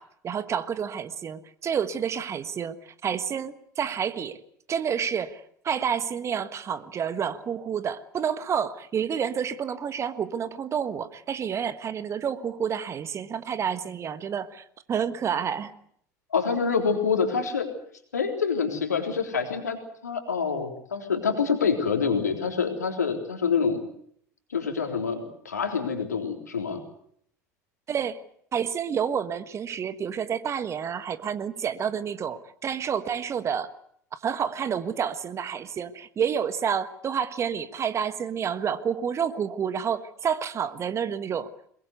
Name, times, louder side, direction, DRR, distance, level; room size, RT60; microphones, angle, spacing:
voice 1, 0.0-4.4 4.7-15.7 27.9-28.2 28.5-33.7 34.2-41.5, right 7 dB, 30° right, 13 dB, 1.5 m, -29 dB
voice 2, 16.3-17.7 18.1-19.8 20.0-23.8 24.5-26.8, left 5 dB, 80° left, 4 dB, 3.8 m, -26 dB
22.5 x 22.0 x 8.1 m, 0.66 s
figure-of-eight pair, 70°, 9 cm